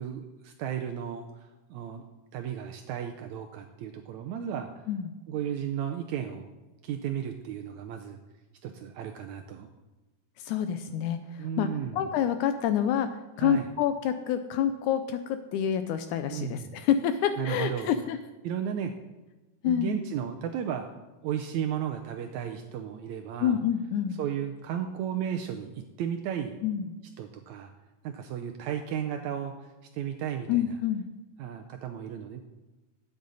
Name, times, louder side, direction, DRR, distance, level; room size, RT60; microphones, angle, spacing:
voice 1, 0.0-2.0 2.3-4.8 5.3-6.4 6.8-8.2 8.6-9.7 11.4-12.0 13.4-13.7 16.3-16.7 17.4-17.9 18.4-18.9 19.6-20.9 21.2-23.6 24.2-25.7 26.0-26.6 27.2-27.7 28.0-30.6 31.4-32.4, right 9 dB, 85° right, 5 dB, 1.7 m, -34 dB
voice 2, 10.4-18.2 19.6-20.0 23.4-24.2 26.6-26.9 30.5-31.1, left 9 dB, 80° left, 9 dB, 1.8 m, -28 dB
12.0 x 8.5 x 4.0 m, 1.1 s
omnidirectional pair, 3.8 m